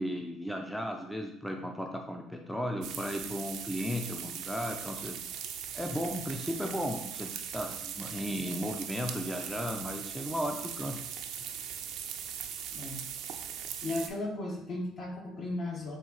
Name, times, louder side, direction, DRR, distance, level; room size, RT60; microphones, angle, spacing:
voice 1, 0.0-5.2 5.7-11.1, equal, 5° left, 3 dB, 0.4 m, -35 dB
sound 1, 2.8-14.1, right 8 dB, 70° right, 0.4 m, -40 dB
voice 2, 12.7-13.0 13.8-16.0, left 2 dB, 50° left, 0 dB, 1.0 m, -36 dB
4.0 x 2.4 x 3.8 m, 0.80 s
supercardioid pair, 75°, 0 cm